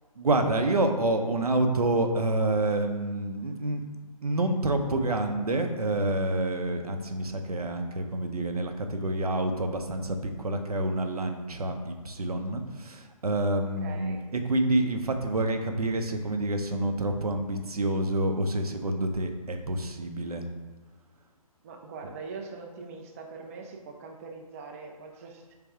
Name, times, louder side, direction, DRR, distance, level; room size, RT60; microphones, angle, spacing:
voice 1, 0.2-3.8 4.2-20.5, right 2 dB, 85° right, 5 dB, 0.6 m, -28 dB
voice 2, 13.8-14.2 21.6-25.5, right 4 dB, 25° right, 2 dB, 0.3 m, -42 dB
3.4 x 3.4 x 4.7 m, 1.3 s
figure-of-eight pair, 135°, 19 cm